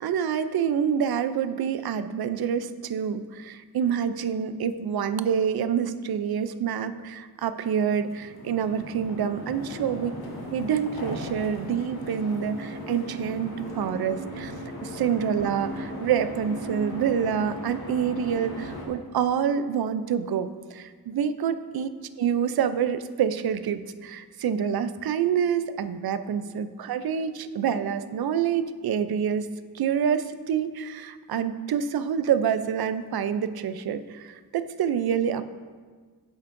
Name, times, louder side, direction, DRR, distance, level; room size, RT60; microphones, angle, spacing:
voice 1, 0.0-10.1 10.5-14.5 14.8-21.9 22.2-29.5 29.7-35.4, right 8 dB, 70° right, 12 dB, 0.5 m, -27 dB
sound 1, 7.9-18.9, equal, 70° left, 1.5 m, -37 dB
9.9 x 7.0 x 2.6 m, 1.5 s
wide cardioid pair, 100°, 39 cm